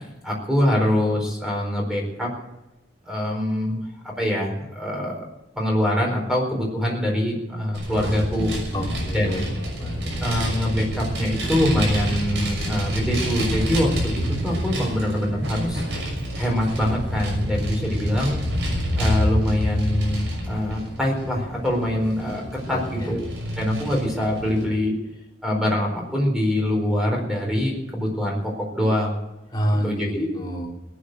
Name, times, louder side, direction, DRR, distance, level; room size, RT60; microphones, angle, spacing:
voice 1, 0.2-2.3 3.1-3.8 4.2-5.3 5.5-8.6 9.1-9.4 10.2-15.8 16.4-18.4 19.0-22.4 22.7-23.2 23.6-24.9 25.4-29.2 29.8-30.3, left 1 dB, 5° right, -1 dB, 4.5 m, -24 dB
Vehicle, 7.7-24.6, equal, 60° right, 6.2 m, -28 dB
voice 2, 8.7-9.5 9.7-10.4 22.7-23.1 29.5-30.7, equal, 20° left, -1 dB, 3.3 m, -28 dB
18.5 x 9.5 x 8.0 m, 0.96 s
head